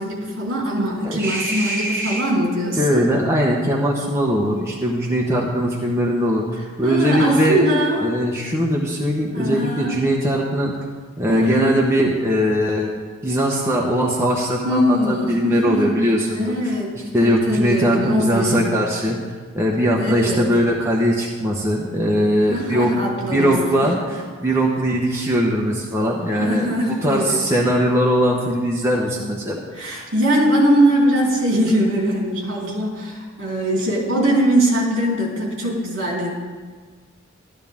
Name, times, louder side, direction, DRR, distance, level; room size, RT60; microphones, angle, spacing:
voice 1, 0.0-3.0 6.8-8.1 9.3-10.0 11.3-11.7 14.6-15.9 16.3-16.9 17.2-18.8 19.9-20.5 22.5-23.9 26.4-27.4 29.7-36.3, equal, 65° right, -3 dB, 3.8 m, -21 dB
voice 2, 1.0-2.2 2.8-6.4 6.8-7.6 8.0-10.7 11.2-12.9 13.2-16.7 17.1-19.2 19.5-22.9 23.3-29.6, equal, 15° right, -3 dB, 1.1 m, -20 dB
13.0 x 12.5 x 3.6 m, 1.5 s
head